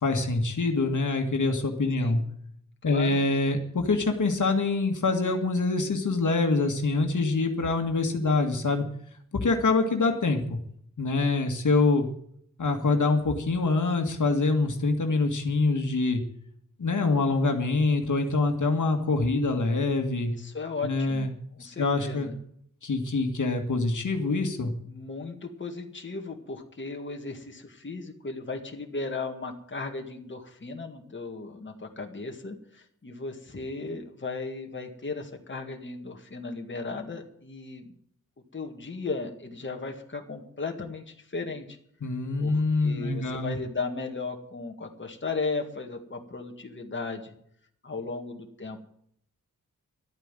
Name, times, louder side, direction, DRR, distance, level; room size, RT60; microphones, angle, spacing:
voice 1, 0.0-2.2 2.8-8.9 9.3-10.6 11.0-12.1 12.6-16.2 16.8-20.3 20.8-21.3 21.6-22.3 22.8-24.7 42.0-43.6, left 3 dB, 65° left, 4 dB, 2.0 m, -25 dB
voice 2, 2.8-3.2 20.3-21.3 21.6-22.3 24.8-38.0 38.5-41.8 42.4-47.3 47.8-48.8, left 3 dB, 35° left, 3 dB, 1.9 m, -36 dB
12.5 x 9.2 x 9.0 m, 0.67 s
wide cardioid pair, 95°, 33 cm